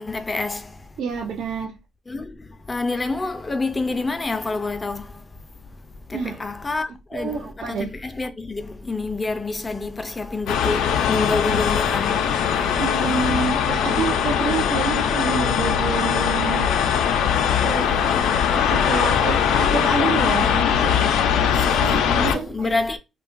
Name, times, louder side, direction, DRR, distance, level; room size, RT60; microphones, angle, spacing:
voice 1, 0.0-0.8 2.1-5.2 6.1-12.4 13.9-14.0 18.1-18.3 21.1-21.7 22.2-23.0, left 3 dB, 25° left, 0.4 m, -28 dB
voice 2, 1.0-1.8 6.1-6.4 7.1-7.9 12.8-16.7 17.6-18.2 18.6-22.7, right 5 dB, 75° right, 0.4 m, -28 dB
sound 1, 10.5-22.4, left 8 dB, 90° left, 0.4 m, -20 dB
2.8 x 2.3 x 2.5 m
cardioid pair, 90°, 0 cm